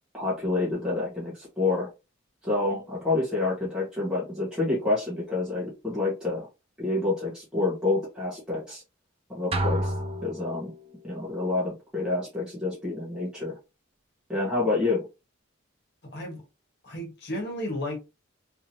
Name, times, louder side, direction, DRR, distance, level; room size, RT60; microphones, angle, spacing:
voice 1, 0.1-1.9 2.4-6.5 6.8-8.8 9.3-9.9 10.2-10.7 11.0-13.5 14.3-15.0, left 2 dB, 5° right, 1.4 m, -28 dB
sound 1, 9.5-11.0, right 1 dB, 30° right, 0.4 m, -29 dB
voice 2, 16.0-16.4 16.8-18.0, left 1 dB, 50° left, 1.6 m, -33 dB
3.6 x 3.1 x 2.8 m
head